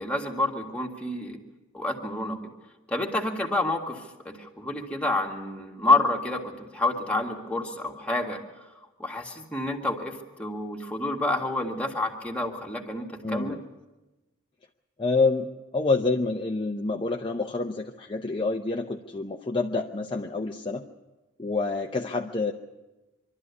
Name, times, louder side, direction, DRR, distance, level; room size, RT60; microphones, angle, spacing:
voice 1, 0.0-1.4 1.7-2.4 2.9-8.7 9.0-13.6, left 2 dB, 5° left, 1 dB, 1.8 m, -28 dB
voice 2, 13.2-13.6 15.0-15.5 15.7-20.8 21.4-22.5, left 3 dB, 25° left, 3 dB, 0.7 m, -27 dB
24.5 x 12.5 x 9.6 m, 1.1 s
head